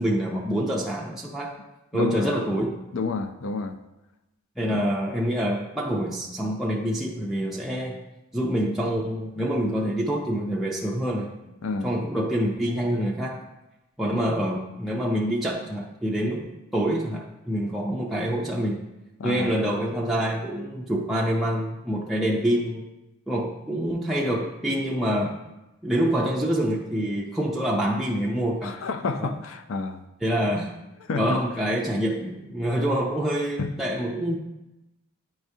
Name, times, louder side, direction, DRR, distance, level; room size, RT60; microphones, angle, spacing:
voice 1, 0.0-1.6 1.9-2.8 4.6-8.0 8.3-11.3 11.8-13.4 14.0-18.8 19.2-22.9 23.3-25.4 25.8-28.8 29.2-29.3 30.2-30.8 31.2-34.4, equal, ahead, -4 dB, 0.4 m, -26 dB
voice 2, 1.9-2.3 2.9-3.8 4.7-4.8 11.6-11.9 19.2-19.5 28.6-30.0 31.1-31.4 33.6-33.7, left 4 dB, 65° left, 8 dB, 0.4 m, -29 dB
9.1 x 4.7 x 2.7 m, 0.97 s
head